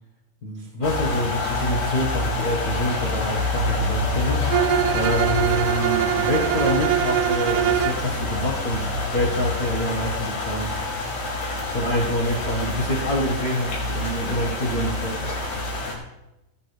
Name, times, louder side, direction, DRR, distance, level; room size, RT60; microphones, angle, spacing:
voice 1, 0.4-4.6 4.9-10.7 11.7-15.3, left 1 dB, 50° left, -4 dB, 1.1 m, -26 dB
sound 1, 0.8-16.0, left 2 dB, 80° left, 4.7 m, -27 dB
Bowed string instrument, 4.5-8.1, right 11 dB, 85° right, 2.4 m, -23 dB
17.0 x 9.6 x 3.3 m, 0.92 s
omnidirectional pair, 4.2 m